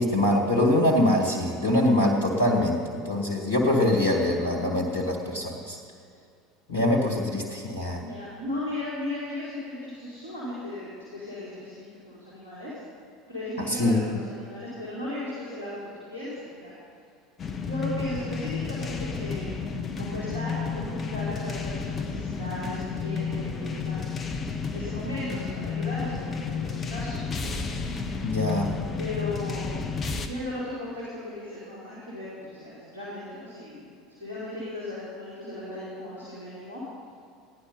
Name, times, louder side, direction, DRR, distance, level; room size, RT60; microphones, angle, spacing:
voice 1, 0.0-5.8 6.7-8.0 13.7-14.0 28.2-28.7, left 1 dB, 80° left, 0 dB, 1.9 m, -24 dB
voice 2, 8.0-12.8 13.3-15.8 16.1-16.7 17.6-24.2 24.7-27.2 29.0-30.0 30.2-36.8, left 1 dB, 80° right, -8 dB, 3.3 m, -36 dB
sound 1, 17.4-30.3, left 5 dB, 30° left, 1.2 m, -31 dB
16.0 x 10.5 x 5.6 m, 2.5 s
figure-of-eight pair, 70°, 0 cm